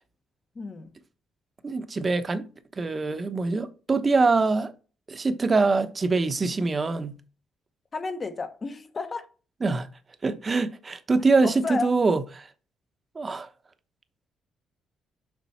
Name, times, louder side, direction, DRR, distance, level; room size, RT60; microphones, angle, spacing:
voice 1, 0.5-0.9 7.9-9.3 11.4-11.9, left 4 dB, 35° left, 1.2 m, -32 dB
voice 2, 1.6-2.4 2.8-4.7 5.1-7.1 9.6-9.9 10.2-12.5 13.1-13.5, right 3 dB, 30° right, 1.0 m, -24 dB
7.3 x 5.2 x 4.3 m
cardioid pair, 90°, 0 cm